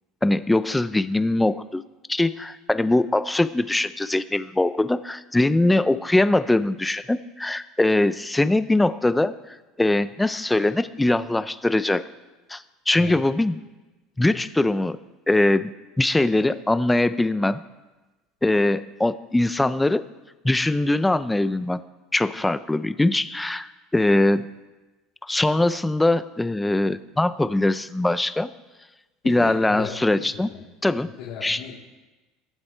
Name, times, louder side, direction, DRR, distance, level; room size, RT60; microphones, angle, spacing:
voice 1, 0.2-1.8 2.1-12.1 12.5-13.6 14.2-15.0 15.3-15.7 16.0-17.6 18.4-20.0 20.4-21.8 22.1-24.5 25.2-28.5 29.2-30.5 30.8-31.1 31.4-31.6, left 2 dB, 10° left, 14 dB, 0.5 m, -22 dB
voice 2, 29.2-30.6 31.0-31.7, left 7 dB, 65° left, -5 dB, 3.2 m, -37 dB
23.5 x 7.8 x 4.4 m, 1.1 s
supercardioid pair, 130°, 0 cm